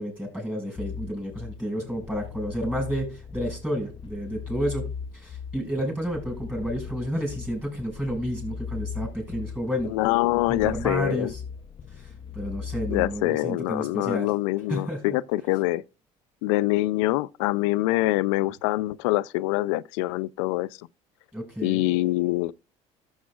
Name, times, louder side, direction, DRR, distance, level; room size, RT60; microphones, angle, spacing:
voice 1, 0.0-4.8 5.1-9.9 10.5-11.4 11.9-14.3 14.7-15.2 18.4-18.5 21.3-21.9, equal, 10° right, 5.2 m, -31 dB
sound 1, 0.8-13.3, left 6 dB, 35° left, 0.5 m, -38 dB
voice 2, 9.9-11.3 12.9-15.8 16.4-20.7 21.6-22.5, left 18 dB, 90° left, 0.4 m, -25 dB
13.5 x 7.2 x 2.3 m
supercardioid pair, 85°, 15 cm